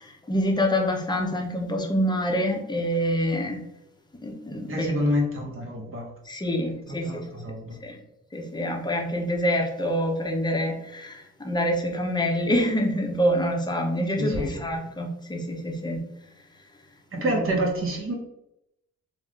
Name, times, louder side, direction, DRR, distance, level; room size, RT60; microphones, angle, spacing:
voice 1, 0.0-3.6 4.2-5.1 6.2-7.2 7.8-8.0 8.3-16.0 17.2-17.5, equal, 15° left, 2 dB, 0.8 m, -26 dB
voice 2, 4.7-6.1 7.0-7.8 14.2-14.6 17.2-18.1, equal, 45° right, 1 dB, 1.2 m, -27 dB
3.5 x 2.5 x 3.2 m, 0.82 s
cardioid pair, 90°, 30 cm